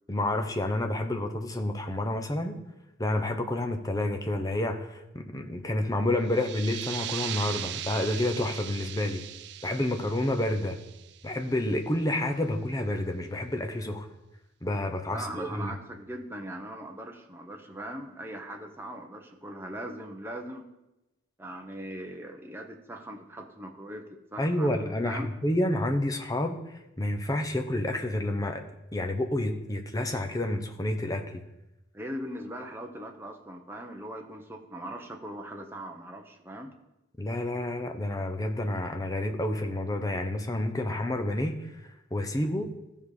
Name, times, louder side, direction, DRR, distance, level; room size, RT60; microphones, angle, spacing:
voice 1, 0.1-2.6 3.0-9.2 9.6-10.8 11.2-14.1 14.6-15.7 24.4-26.6 27.0-28.6 28.9-31.4 37.2-41.7 42.1-42.7, left 1 dB, 20° left, 5 dB, 0.8 m, -29 dB
sound 1, 6.2-11.6, right 12 dB, 60° right, 0.4 m, -39 dB
voice 2, 15.1-20.6 21.4-25.3 31.9-36.7, right 1 dB, 10° right, 2 dB, 0.9 m, -40 dB
14.5 x 5.4 x 4.9 m, 0.95 s
head